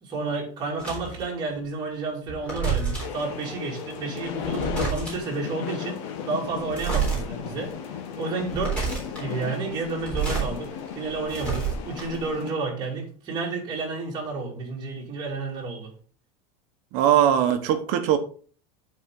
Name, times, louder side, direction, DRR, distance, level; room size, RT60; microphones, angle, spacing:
voice 1, 0.0-7.7 8.2-15.9, right 3 dB, 25° right, 2.4 m, -31 dB
sound 1, 0.8-1.2 2.3-3.2 4.3-5.3 6.7-7.2 7.7-7.8 8.4-9.2 9.9-10.5 10.9-12.3, right 6 dB, 5° left, 3.6 m, -28 dB
sound 2, 3.0-12.5, left 8 dB, 60° left, 1.2 m, -35 dB
voice 2, 16.9-18.2, right 10 dB, 50° right, 1.1 m, -20 dB
11.0 x 4.4 x 3.7 m
supercardioid pair, 170°, 18 cm